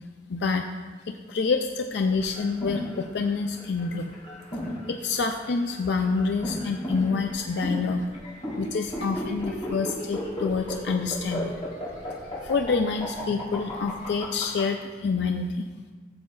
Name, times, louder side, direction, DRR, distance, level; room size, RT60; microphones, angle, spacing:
voice 1, 0.3-0.6 1.1-4.1 4.9-8.0 8.6-11.5 12.4-15.7, left 4 dB, 80° left, 5 dB, 0.4 m, -27 dB
sound 1, 2.2-14.6, equal, 35° left, 2.3 m, -34 dB
14.5 x 7.4 x 2.3 m, 1.5 s
head